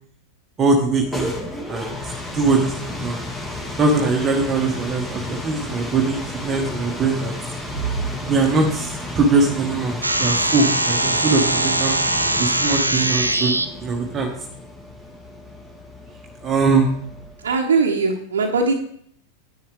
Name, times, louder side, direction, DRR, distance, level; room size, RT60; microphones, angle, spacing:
voice 1, 0.6-1.3 1.7-2.0 2.3-2.7 3.0-3.2 3.8-7.3 8.2-12.0 12.4-14.3 16.4-16.9, right 3 dB, 25° right, 1 dB, 1.4 m, -21 dB
sound 1, 0.8-17.5, left 2 dB, 10° left, 1.9 m, -33 dB
sound 2, 10.0-13.6, right 2 dB, 85° right, 0.6 m, -21 dB
voice 2, 17.4-18.7, right 4 dB, 65° right, -2 dB, 1.1 m, -20 dB
10.5 x 8.5 x 3.4 m, 0.65 s
figure-of-eight pair, 90°, 0 cm